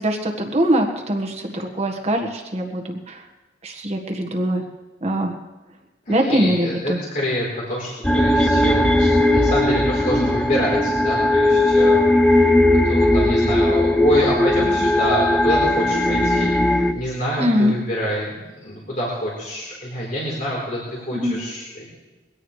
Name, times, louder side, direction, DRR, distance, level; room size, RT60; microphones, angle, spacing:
voice 1, 0.0-3.2 3.6-4.6 5.0-5.3 6.1-7.0 17.4-17.7 21.1-21.4, equal, 35° right, 2 dB, 1.6 m, -22 dB
voice 2, 6.1-12.0 12.3-21.9, equal, 45° left, -5 dB, 3.9 m, -26 dB
sound 1, 8.0-16.9, left 1 dB, 5° left, 0.5 m, -18 dB
22.5 x 17.0 x 3.3 m, 1.2 s
head